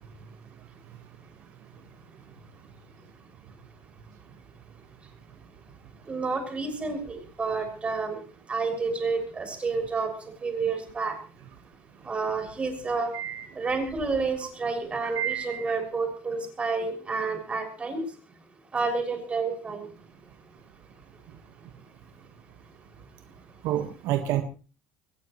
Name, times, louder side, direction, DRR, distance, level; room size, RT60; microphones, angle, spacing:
voice 1, 6.0-11.2 12.0-13.1 13.5-18.2 18.7-19.9, right 4 dB, 20° right, 3 dB, 6.4 m, -30 dB
voice 2, 13.1-13.5 15.0-15.7 23.6-24.4, right 12 dB, 70° right, 7 dB, 1.6 m, -29 dB
22.5 x 19.0 x 3.2 m, 0.36 s
cardioid pair, 130°, 5 cm